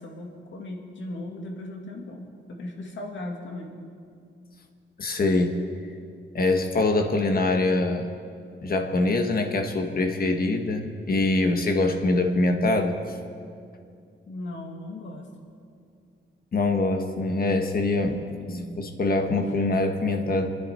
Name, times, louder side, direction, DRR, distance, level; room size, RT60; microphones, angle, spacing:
voice 1, 0.0-3.7 14.3-15.3 18.4-19.0 19.4-19.5, left 1 dB, 75° left, 1 dB, 2.2 m, -37 dB
voice 2, 5.0-5.5 6.3-8.1 8.6-13.0 16.5-18.2 18.8-20.5, left 2 dB, 50° left, 5 dB, 1.5 m, -24 dB
29.5 x 10.5 x 4.5 m, 2.3 s
wide cardioid pair, 140°, 19 cm